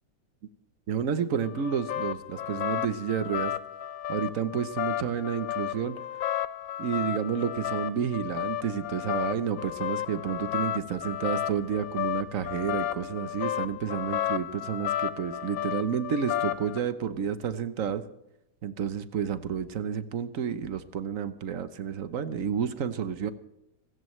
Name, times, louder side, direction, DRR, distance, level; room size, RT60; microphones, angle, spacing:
voice 1, 0.9-3.5 4.1-6.0 6.8-18.0 18.6-23.3, right 7 dB, 55° right, 12 dB, 1.1 m, -30 dB
sound 1, 1.4-16.8, left 11 dB, 65° left, 0.9 m, -33 dB
25.5 x 14.5 x 3.2 m, 0.86 s
omnidirectional pair, 2.1 m